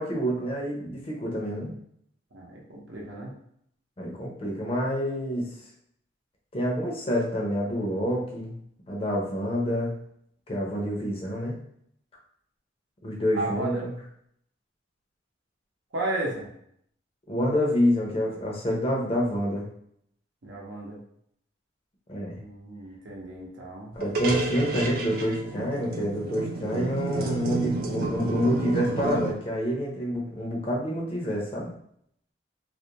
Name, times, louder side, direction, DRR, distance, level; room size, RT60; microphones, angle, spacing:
voice 1, 0.0-1.7 4.0-5.5 6.5-8.5 8.9-10.0 10.5-11.6 13.0-13.9 17.3-19.7 22.1-22.4 23.9-31.7, equal, 30° left, -2 dB, 0.5 m, -27 dB
voice 2, 2.3-3.3 13.3-13.9 15.9-16.5 20.4-21.0 22.4-23.9, right 2 dB, 80° right, -3 dB, 0.7 m, -33 dB
sound 1, 24.0-29.3, right 3 dB, 50° right, 0.3 m, -31 dB
2.4 x 2.1 x 2.8 m, 0.70 s
head